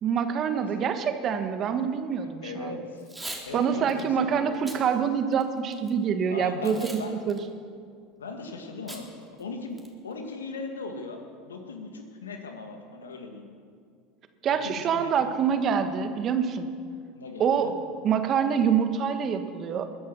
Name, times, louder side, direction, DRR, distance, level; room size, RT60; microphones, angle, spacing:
voice 1, 0.0-2.8 3.5-7.0 7.3-7.4 14.4-16.7 17.4-17.7 18.0-19.9, right 7 dB, 40° right, 8 dB, 1.4 m, -26 dB
voice 2, 2.2-3.1 3.4-4.6 6.3-7.2 8.2-9.1 9.4-13.5 14.5-15.3 17.1-17.7, left 3 dB, 90° left, 5 dB, 1.9 m, -38 dB
Packing tape duct tape / Tearing, 3.0-3.4 3.9-4.0 4.5-4.8 5.3-5.9 6.6-7.0 7.3-7.4 8.9-9.0 9.4-9.5 9.8-10.1, right 1 dB, 10° right, 3.0 m, -40 dB
20.5 x 10.5 x 6.2 m, 2.3 s
hypercardioid pair, 80°, 0 cm